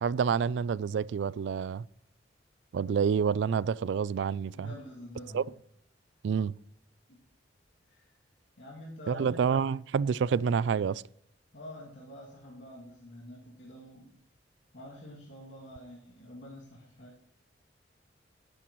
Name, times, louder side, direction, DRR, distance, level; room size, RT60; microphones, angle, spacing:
voice 1, 0.0-1.8 2.7-4.7 5.3-5.4 6.2-6.5 9.1-11.0, right 6 dB, 70° right, 0.3 m, -28 dB
voice 2, 4.5-5.5 7.1-7.2 7.8-8.2 8.6-9.7 11.5-14.2 14.7-17.1, left 1 dB, 90° left, 2.4 m, -47 dB
16.5 x 9.8 x 3.1 m
head